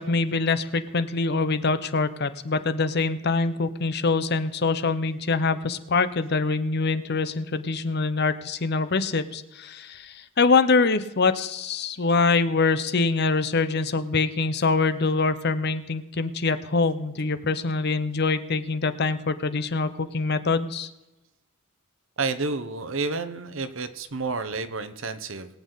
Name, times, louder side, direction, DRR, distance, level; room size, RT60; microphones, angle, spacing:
voice 1, 0.0-20.9, left 4 dB, 50° left, 13 dB, 0.8 m, -24 dB
voice 2, 22.2-25.5, right 3 dB, 65° right, 10 dB, 1.1 m, -30 dB
22.0 x 8.4 x 4.0 m, 0.99 s
head